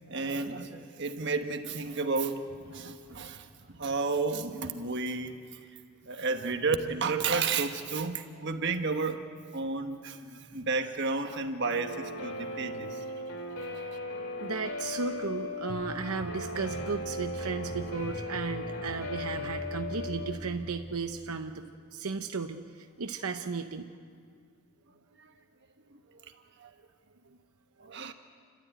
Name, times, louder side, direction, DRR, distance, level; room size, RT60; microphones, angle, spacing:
voice 1, 0.1-5.4 6.0-9.2 9.5-13.0 14.4-14.5 25.2-25.3 25.9-26.0 26.6-26.7 27.8-28.1, right 4 dB, 50° right, 6 dB, 1.3 m, -32 dB
Guitar, 11.6-20.3, left 2 dB, 70° left, 2.7 m, -38 dB
voice 2, 14.4-23.9 27.8-28.0, right 4 dB, 80° right, 6 dB, 0.8 m, -35 dB
sound 1, 15.7-21.0, equal, 25° left, 3.0 m, -43 dB
30.0 x 13.0 x 9.2 m, 2.2 s
head